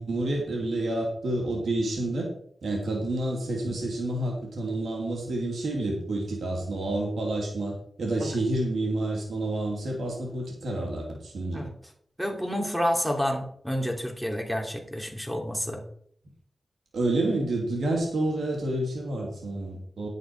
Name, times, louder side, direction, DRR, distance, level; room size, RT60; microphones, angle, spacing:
voice 1, 0.0-2.3 2.6-11.6 16.9-20.1, right 2 dB, 85° right, -1 dB, 3.0 m, -29 dB
voice 2, 12.2-15.8, equal, 5° right, 2 dB, 3.0 m, -29 dB
11.0 x 9.0 x 4.7 m, 0.62 s
cardioid pair, 60°, 0 cm